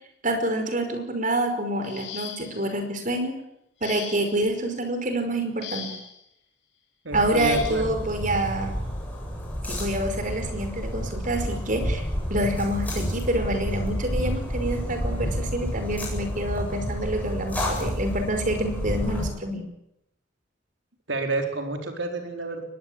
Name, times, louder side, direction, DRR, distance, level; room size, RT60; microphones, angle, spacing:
voice 1, 0.2-3.3 3.8-6.0 7.1-8.8 9.7-12.0 12.3-19.7, right 1 dB, 45° right, 7 dB, 5.2 m, -27 dB
sound 1, 1.8-2.7 3.8-4.5 5.6-6.2 7.4-7.8 9.0-9.2 9.7-9.9, left 8 dB, 65° left, 5.3 m, -39 dB
voice 2, 7.0-8.0 21.1-22.6, right 2 dB, 85° right, 4 dB, 4.5 m, -29 dB
sound 2, 7.1-19.3, equal, 10° left, 7.9 m, -30 dB
23.0 x 20.5 x 8.9 m, 0.82 s
head